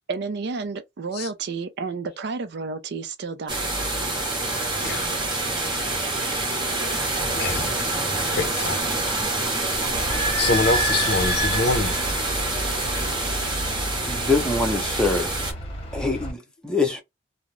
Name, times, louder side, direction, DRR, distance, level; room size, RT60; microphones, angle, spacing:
voice 1, 0.1-3.7, right 4 dB, 60° right, 0.5 m, -31 dB
sound 1, 3.5-15.5, right 2 dB, 25° right, 0.8 m, -26 dB
voice 2, 7.4-7.7 8.2-8.8 10.4-11.9, left 3 dB, 55° left, 0.5 m, -25 dB
Idling / Squeak, 9.9-16.3, right 1 dB, 30° left, 0.8 m, -29 dB
voice 3, 14.0-15.3 15.9-17.0, left 3 dB, 5° left, 0.6 m, -24 dB
2.4 x 2.0 x 3.0 m
head